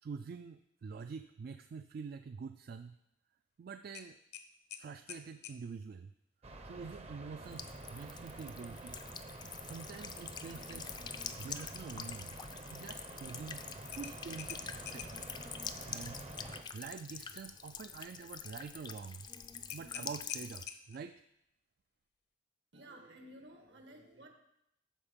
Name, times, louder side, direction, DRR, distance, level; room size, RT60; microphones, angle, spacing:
voice 1, 0.0-3.0 3.6-4.2 4.8-6.1 6.6-9.0 9.6-12.3 12.7-15.1 15.9-16.3 16.7-19.3 19.7-21.2, right 5 dB, 55° right, 9 dB, 0.3 m, -46 dB
sound 1, 3.9-5.6 8.2-8.5 8.9-9.0 13.9-15.3 19.7-21.1, left 9 dB, 60° left, 0.7 m, -47 dB
sound 2, 6.4-16.6, right 2 dB, 35° right, 0.7 m, -49 dB
Buzz / Water tap faucet / Trickle dribble, 7.4-20.6, left 6 dB, 25° left, 0.4 m, -46 dB
voice 2, 22.7-24.3, right 1 dB, 75° right, 4 dB, 1.4 m, -54 dB
12.5 x 4.5 x 5.1 m, 0.80 s
head